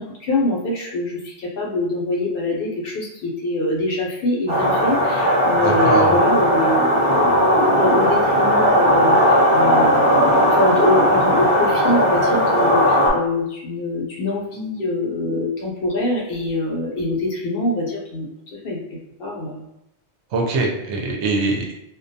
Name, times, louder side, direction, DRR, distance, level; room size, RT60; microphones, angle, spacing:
voice 1, 0.0-18.8 19.2-19.6, left 2 dB, 60° left, -2 dB, 0.7 m, -24 dB
sound 1, 4.5-13.1, equal, 30° right, 0.6 m, -17 dB
voice 2, 5.6-6.2 20.3-21.7, right 3 dB, 80° right, 0 dB, 0.9 m, -23 dB
2.3 x 2.1 x 2.6 m, 0.82 s
omnidirectional pair, 1.2 m